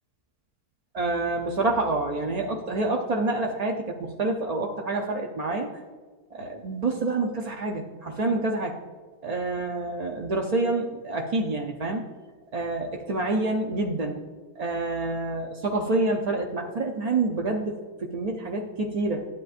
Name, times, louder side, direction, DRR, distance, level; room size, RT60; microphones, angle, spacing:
voice 1, 0.9-5.7 6.3-8.8 9.2-12.0 12.5-14.2 14.6-19.3, right 2 dB, 50° right, 1 dB, 0.5 m, -27 dB
13.0 x 9.0 x 2.5 m, 1.4 s
omnidirectional pair, 1.4 m